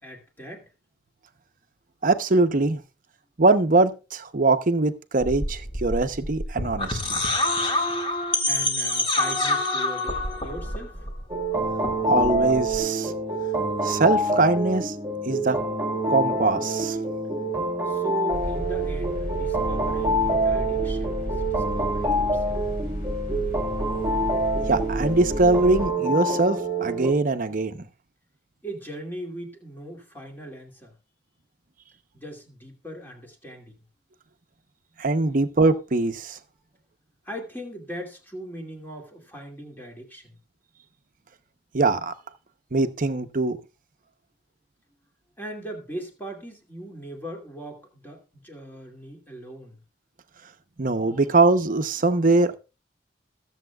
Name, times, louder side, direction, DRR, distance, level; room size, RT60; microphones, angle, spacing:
voice 1, 0.0-0.7 8.4-11.1 17.8-22.6 28.6-30.9 32.1-33.7 37.2-40.4 45.4-49.8, right 1 dB, 10° left, 2.4 m, -39 dB
voice 2, 2.0-2.8 3.4-7.2 12.1-13.1 13.8-14.9 15.2-15.6 16.1-17.0 24.7-27.9 35.0-36.4 41.7-42.1 42.7-43.6 50.8-52.6, right 3 dB, 50° right, 0.9 m, -22 dB
sound 1, 5.2-11.5 11.7-12.8, left 2 dB, 30° left, 1.9 m, -27 dB
sound 2, 11.3-27.1, right 1 dB, 15° right, 1.3 m, -26 dB
sound 3, 18.3-25.9, equal, 50° left, 3.8 m, -32 dB
21.0 x 7.4 x 2.3 m
head